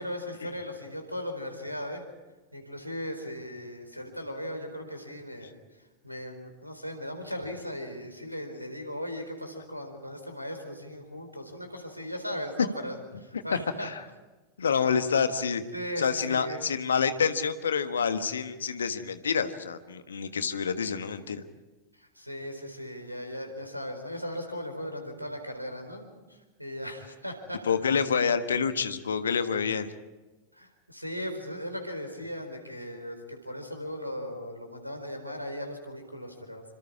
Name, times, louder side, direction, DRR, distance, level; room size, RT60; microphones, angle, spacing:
voice 1, 0.0-2.0 2.5-5.5 6.0-13.9 15.7-16.6 22.0-27.6 30.5-36.6, equal, 90° right, 6 dB, 4.2 m, -38 dB
voice 2, 13.3-14.0 14.6-15.6 16.0-21.4 27.6-29.9, left 6 dB, 70° left, 10 dB, 1.4 m, -28 dB
28.0 x 25.5 x 4.8 m, 1.2 s
figure-of-eight pair, 90°, 0 cm